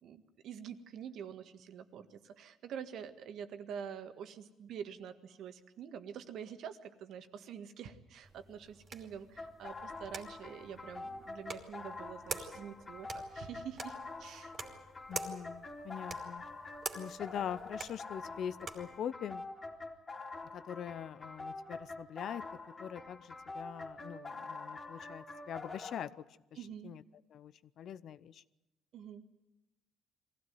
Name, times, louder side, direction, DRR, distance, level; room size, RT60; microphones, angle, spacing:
voice 1, 0.0-14.6 26.5-26.9 28.9-29.2, right 8 dB, 65° right, 9 dB, 1.8 m, -46 dB
sound 1, 8.2-19.0, right 4 dB, 35° right, 2.7 m, -47 dB
sound 2, 9.4-26.1, left 3 dB, 25° left, 2.8 m, -46 dB
voice 2, 15.1-16.4 16.9-19.4 20.5-22.4 22.8-26.2 26.8-27.0 27.3-28.4, left 9 dB, 55° left, 17 dB, 0.7 m, -43 dB
23.0 x 16.0 x 9.4 m, 0.93 s
cardioid pair, 135°, 0 cm